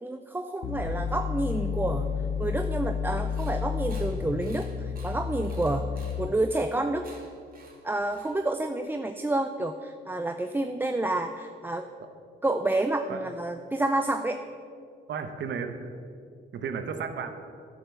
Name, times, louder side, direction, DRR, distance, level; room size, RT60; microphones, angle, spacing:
voice 1, 0.0-2.1 2.4-5.9 6.2-7.1 7.8-11.9 12.4-14.4, right 2 dB, 10° right, 7 dB, 0.5 m, -29 dB
sound 1, 0.6-6.6, left 7 dB, 60° left, 0.6 m, -31 dB
sound 2, 3.0-8.8, right 3 dB, 45° right, 2.2 m, -54 dB
voice 2, 15.1-15.9 16.5-17.3, right 6 dB, 65° right, 7 dB, 1.2 m, -33 dB
11.0 x 6.8 x 6.9 m, 2.4 s
cardioid pair, 90°, 20 cm